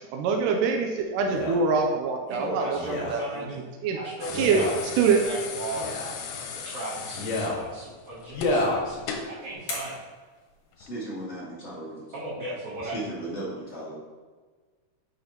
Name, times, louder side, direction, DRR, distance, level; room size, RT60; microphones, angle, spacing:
voice 1, 0.1-2.8 3.1-3.2 3.8-4.0 4.4-4.6 5.0-5.2, right 5 dB, 85° right, 3 dB, 2.1 m, -24 dB
Male speech man speaking, 1.2-1.6 2.8-3.2 4.3-4.8 5.7-6.2 7.1-7.6 8.3-8.8 9.5-9.6, left 2 dB, 60° left, 2.5 m, -29 dB
voice 2, 2.3-3.7 3.9-6.0 6.4-10.0 12.1-13.0, right 1 dB, 65° right, -10 dB, 2.9 m, -36 dB
sound 1, 4.2-9.4 10.7-10.9, left 6 dB, 85° left, 2.3 m, -37 dB
sound 2, 8.6-11.3, left 2 dB, 45° left, 2.8 m, -42 dB
voice 3, 10.8-12.1 12.9-14.0, right 1 dB, 25° left, -7 dB, 1.6 m, -36 dB
8.6 x 6.0 x 2.8 m, 1.4 s
omnidirectional pair, 3.7 m